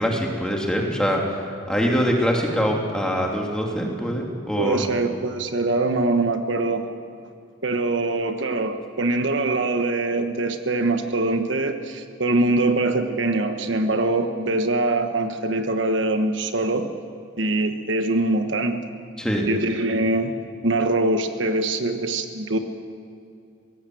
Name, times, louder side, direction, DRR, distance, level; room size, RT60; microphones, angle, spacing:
voice 1, 0.0-1.4 1.7-4.8 19.2-19.5, equal, 5° left, -1 dB, 2.9 m, -23 dB
voice 2, 4.6-6.9 7.6-16.9 17.4-18.8 19.2-20.3 20.6-22.6, right 2 dB, 70° right, 6 dB, 1.3 m, -23 dB
23.5 x 17.5 x 7.9 m, 2.4 s
head